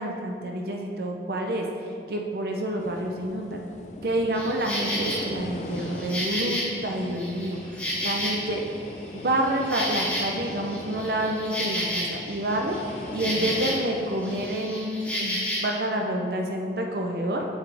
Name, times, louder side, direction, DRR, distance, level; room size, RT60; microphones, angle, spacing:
voice 1, 0.0-3.6 4.0-8.9 9.1-17.5, right 1 dB, 60° right, 2 dB, 0.6 m, -28 dB
sound 1, 2.8-14.6, left 1 dB, 40° left, 0.4 m, -39 dB
Insect, 4.3-5.2 5.7-8.7 9.1-13.9 14.2-15.7, equal, 10° left, 1.9 m, -31 dB
7.9 x 7.1 x 3.4 m, 2.4 s
head